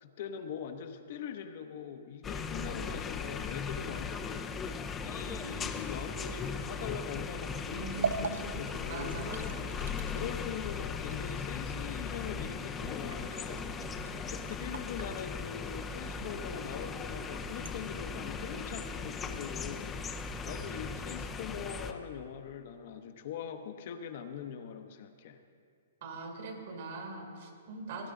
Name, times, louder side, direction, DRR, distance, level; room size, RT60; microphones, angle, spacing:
voice 1, 0.0-4.4 5.0-9.3 10.1-13.7 14.2-20.0 20.4-25.4 28.0-28.1, left 8 dB, 50° left, 7 dB, 0.8 m, -42 dB
sound 1, 2.2-21.9, left 5 dB, 15° left, 0.5 m, -38 dB
voice 2, 7.7-8.4 8.8-9.7 26.0-28.1, right 3 dB, 55° right, 2 dB, 2.2 m, -42 dB
sound 2, 7.9-17.8, right 5 dB, 90° right, 0.6 m, -43 dB
18.5 x 10.0 x 3.8 m, 2.2 s
hypercardioid pair, 160°, 0 cm